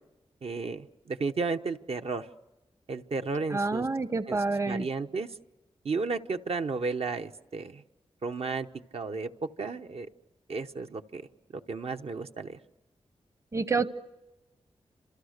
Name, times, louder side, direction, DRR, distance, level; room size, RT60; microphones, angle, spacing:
voice 1, 0.4-2.3 2.9-3.9 4.3-4.4 4.7-5.3 5.8-7.8 8.2-8.7 8.9-9.3 9.6-10.1 10.5-11.2 11.7-12.6, right 4 dB, 65° right, 7 dB, 1.0 m, -33 dB
voice 2, 3.5-4.9 13.5-13.9, right 3 dB, 30° right, 13 dB, 0.8 m, -28 dB
29.5 x 26.5 x 6.6 m, 1.0 s
wide cardioid pair, 100°, 11 cm